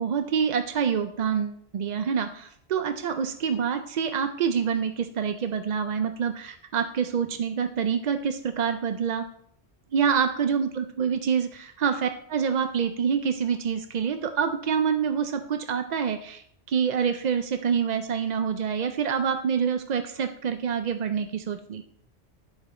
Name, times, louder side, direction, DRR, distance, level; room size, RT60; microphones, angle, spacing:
voice 1, 0.0-9.3 9.9-21.8, right 7 dB, 60° right, 8 dB, 0.4 m, -26 dB
10.5 x 4.9 x 4.2 m, 0.68 s
omnidirectional pair, 1.2 m